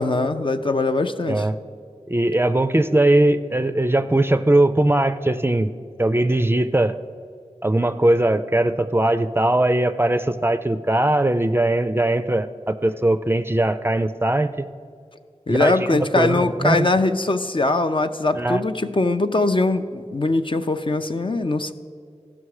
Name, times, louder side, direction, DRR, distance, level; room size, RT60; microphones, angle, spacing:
voice 1, 0.0-1.5 15.5-21.7, left 2 dB, 45° left, 8 dB, 0.5 m, -21 dB
voice 2, 2.1-5.7 6.0-7.0 7.6-14.7 15.5-16.9 18.3-18.6, right 1 dB, 20° right, 10 dB, 0.4 m, -20 dB
15.5 x 6.0 x 4.8 m, 2.2 s
wide cardioid pair, 45°, 12 cm